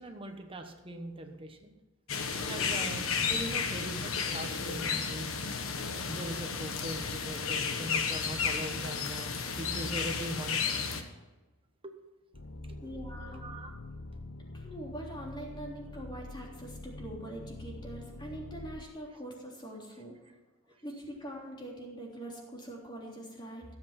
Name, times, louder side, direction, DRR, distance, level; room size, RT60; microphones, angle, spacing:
voice 1, 0.0-1.7 2.5-5.3 6.1-11.1 11.8-11.9 12.7-13.8, right 1 dB, 25° right, 5 dB, 1.1 m, -41 dB
sound 1, 2.1-11.0, left 5 dB, 80° left, 1.4 m, -33 dB
sound 2, 12.3-18.9, left 2 dB, 60° left, 0.9 m, -45 dB
voice 2, 12.8-13.4 14.5-20.1 20.8-23.6, right 1 dB, 20° left, -2 dB, 3.4 m, -43 dB
16.5 x 8.0 x 5.9 m, 1.1 s
head